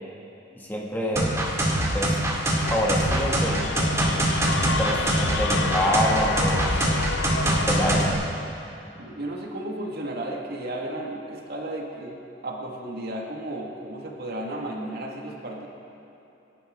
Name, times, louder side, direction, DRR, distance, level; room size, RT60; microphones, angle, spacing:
voice 1, 0.6-1.3 1.9-2.2 2.7-3.6 4.7-6.6 7.5-8.2, equal, 10° left, -3 dB, 2.1 m, -26 dB
sound 1, 1.2-8.1, right 1 dB, 15° right, 2.4 m, -24 dB
sound 2, 2.6-8.1, left 3 dB, 70° left, 0.9 m, -30 dB
voice 2, 9.0-12.2 12.4-15.7, right 1 dB, 55° right, -1 dB, 2.0 m, -33 dB
28.0 x 11.0 x 3.8 m, 3.0 s
head